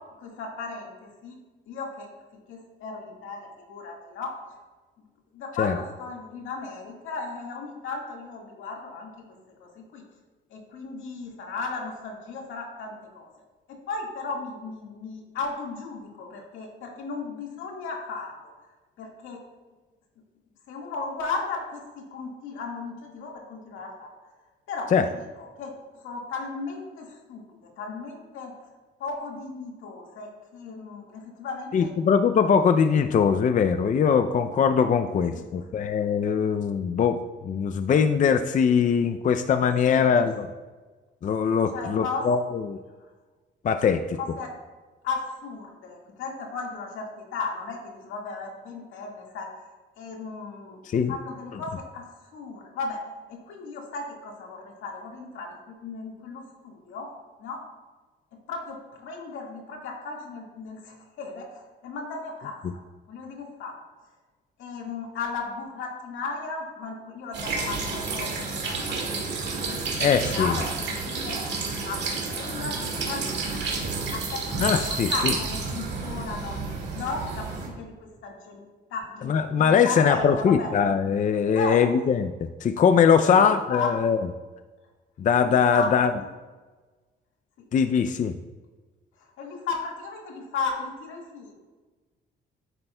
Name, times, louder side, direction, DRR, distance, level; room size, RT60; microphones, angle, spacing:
voice 1, 0.2-1.4 1.7-2.1 2.3-4.3 5.3-9.1 9.8-10.0 10.5-13.3 13.9-18.5 19.0-19.4 20.7-24.1 24.7-25.2 25.6-25.7 26.0-27.4 27.8-28.5 29.0-31.9 35.3-35.4 39.9-40.2 41.7-42.2 44.2-44.5 45.0-49.7 50.0-50.8 51.1-52.0 52.3-53.0 53.3-57.1 57.4-57.6 58.5-62.8 63.1-63.7 64.6-70.0 70.3-71.4 71.8-72.0 72.2-78.6 78.9-79.3 79.6-80.7 81.6-81.8 83.3-83.9 85.4-86.1 89.4-91.5, left 4 dB, 85° left, 0 dB, 1.8 m, -35 dB
voice 2, 31.7-37.2 37.4-40.5 41.2-42.8 43.6-44.2 50.8-51.1 70.0-70.5 74.6-75.3 79.2-82.3 82.6-84.2 85.2-86.1 87.7-88.3, left 6 dB, 40° left, 9 dB, 0.4 m, -21 dB
sound 1, 67.3-77.7, right 4 dB, 60° right, 2.0 m, -30 dB
9.8 x 7.9 x 2.2 m, 1.3 s
cardioid pair, 90°, 20 cm